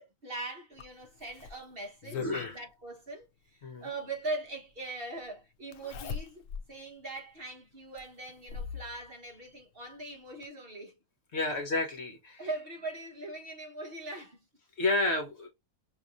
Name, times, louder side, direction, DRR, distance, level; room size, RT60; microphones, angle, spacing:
voice 1, 0.0-11.0 11.5-11.6 12.4-14.5, right 2 dB, 40° right, 1.3 m, -41 dB
Zipper (clothing), 0.8-2.6 4.0-4.1 5.7-6.7 7.2-7.3 8.0-8.8 10.0-10.1 10.4-10.5, left 7 dB, 65° left, 0.9 m, -40 dB
voice 2, 2.1-2.6 3.6-3.8 11.3-12.4 14.8-15.5, left 2 dB, 50° left, 1.2 m, -30 dB
5.7 x 2.8 x 2.5 m
omnidirectional pair, 1.6 m